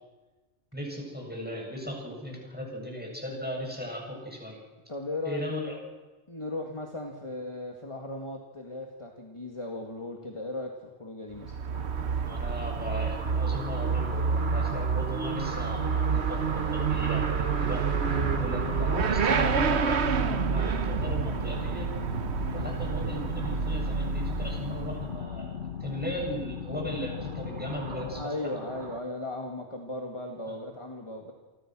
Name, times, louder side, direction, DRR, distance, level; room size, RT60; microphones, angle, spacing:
voice 1, 0.7-4.6 5.2-5.8 12.2-17.9 18.4-21.9 22.5-28.2 30.5-30.6, equal, 10° right, -1 dB, 7.8 m, -37 dB
voice 2, 4.9-5.7 6.3-11.6 25.9-26.0 28.0-31.3, left 2 dB, 25° left, 1 dB, 2.3 m, -37 dB
Motorcycle / Accelerating revving vroom, 11.3-25.2, right 6 dB, 70° right, 1.2 m, -29 dB
sound 1, 11.7-29.0, right 4 dB, 45° right, 1.6 m, -41 dB
sound 2, 18.1-28.2, left 8 dB, 75° left, 1.2 m, -37 dB
28.5 x 24.5 x 6.3 m, 1.2 s
omnidirectional pair, 1.2 m